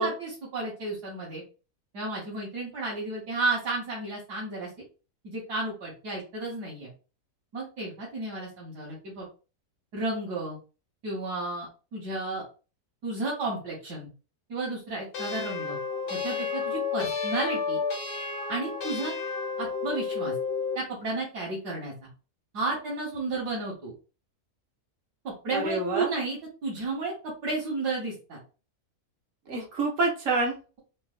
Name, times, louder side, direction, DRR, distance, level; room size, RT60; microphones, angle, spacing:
voice 1, 0.0-1.4 1.9-4.7 5.2-6.9 7.5-9.3 9.9-10.6 11.0-12.4 13.0-14.1 14.5-15.8 16.1-17.8 18.5-19.1 19.6-20.3 20.7-21.9 22.5-23.9 25.2-28.4, right 3 dB, 85° right, -5 dB, 1.6 m, -32 dB
sound 1, 15.1-20.9, left 5 dB, 85° left, 1.5 m, -31 dB
voice 2, 25.5-26.1 29.5-30.8, right 3 dB, 60° right, -1 dB, 1.2 m, -27 dB
3.9 x 2.2 x 2.4 m, 0.33 s
omnidirectional pair, 1.7 m